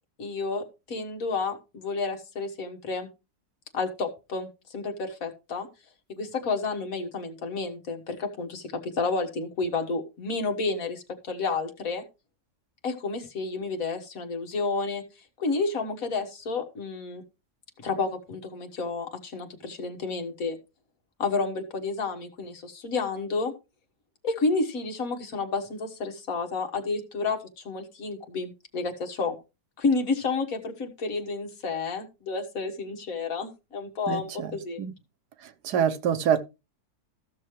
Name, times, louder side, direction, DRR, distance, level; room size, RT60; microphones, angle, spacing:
voice 1, 0.2-3.1 3.7-5.7 6.1-12.0 12.8-15.0 15.4-17.2 17.8-20.6 21.2-23.5 24.2-29.4 29.8-34.8, left 4 dB, 60° left, 2.0 m, -30 dB
voice 2, 34.1-34.5 34.8-34.9 35.6-36.4, right 8 dB, 90° right, 1.5 m, -25 dB
14.5 x 6.5 x 3.2 m
omnidirectional pair, 1.7 m